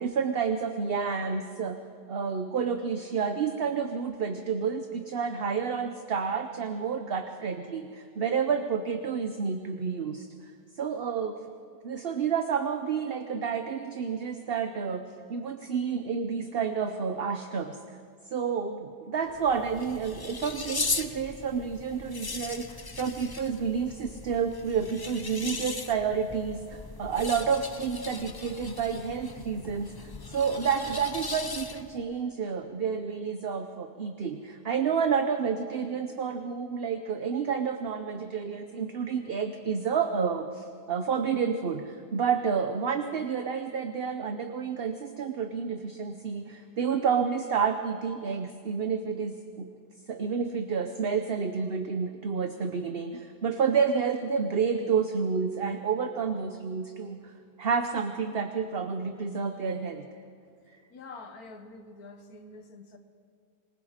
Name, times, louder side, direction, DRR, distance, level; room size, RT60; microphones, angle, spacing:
voice 1, 0.0-1.8 2.1-10.3 10.8-11.4 11.8-17.8 18.3-49.7 50.1-57.3 57.6-60.0, right 6 dB, 45° right, 8 dB, 0.9 m, -30 dB
sound 1, 19.3-32.0, left 3 dB, 30° left, 0.4 m, -38 dB
voice 2, 60.9-63.0, left 3 dB, 75° left, 7 dB, 1.9 m, -46 dB
26.5 x 20.5 x 5.0 m, 2.3 s
omnidirectional pair, 1.6 m